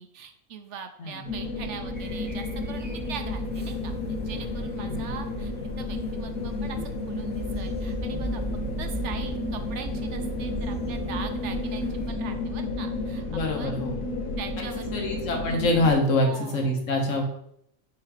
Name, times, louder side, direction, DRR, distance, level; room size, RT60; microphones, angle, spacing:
voice 1, 0.0-3.9 4.2-8.4 8.8-13.8 14.4-14.9 16.2-16.8, right 7 dB, 65° right, 7 dB, 0.9 m, -41 dB
sound 1, 1.2-15.9, left 2 dB, 85° left, 1.4 m, -32 dB
sound 2, 1.9-12.1, right 2 dB, 10° right, 0.5 m, -39 dB
voice 2, 4.8-5.1 13.3-14.0 14.9-17.2, left 2 dB, 70° left, 2 dB, 1.4 m, -25 dB
5.9 x 3.8 x 4.9 m, 0.73 s
omnidirectional pair, 1.4 m